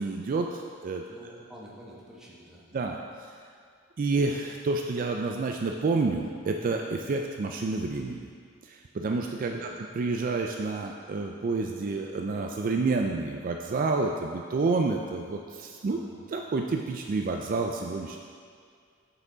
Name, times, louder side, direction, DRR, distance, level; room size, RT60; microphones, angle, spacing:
voice 1, 0.0-1.0 2.7-3.3 4.0-8.3 8.6-9.6 10.0-16.0 16.3-18.2, right 3 dB, 45° right, 2 dB, 0.4 m, -29 dB
voice 2, 1.1-2.7 9.5-9.7 15.9-16.2, equal, 5° right, -6 dB, 1.2 m, -48 dB
7.7 x 6.0 x 3.9 m, 2.2 s
head